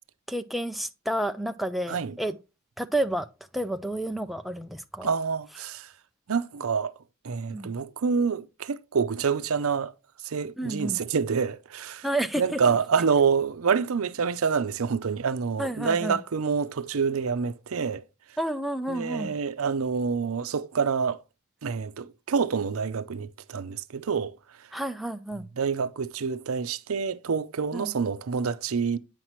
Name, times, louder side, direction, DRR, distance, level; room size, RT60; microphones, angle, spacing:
voice 1, 0.3-2.4 2.8-3.3 3.5-5.1 7.5-7.7 10.6-11.0 12.0-12.6 15.6-16.2 18.4-19.3 24.7-25.4 27.7-27.9, right 1 dB, ahead, 0.4 m, -30 dB
voice 2, 5.0-5.9 6.3-6.9 7.2-9.9 10.2-12.1 12.4-18.0 18.9-21.2 21.6-24.3 25.6-29.0, right 5 dB, 80° right, 0.6 m, -27 dB
8.9 x 5.8 x 3.0 m
head